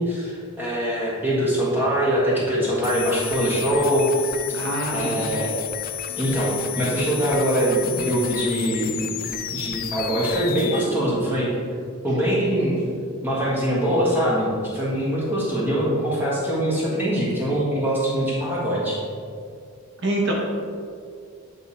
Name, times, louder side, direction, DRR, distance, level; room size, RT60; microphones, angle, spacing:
voice 1, 0.0-4.1 4.9-5.5 6.2-9.1 9.5-11.5 12.0-12.8 13.2-19.0, equal, 10° right, -7 dB, 1.4 m, -23 dB
sound 1, 2.8-10.8, left 11 dB, 40° left, 0.3 m, -32 dB
voice 2, 4.5-5.3 20.0-20.3, right 1 dB, 55° right, -2 dB, 0.8 m, -25 dB
8.3 x 3.5 x 4.2 m, 2.3 s
head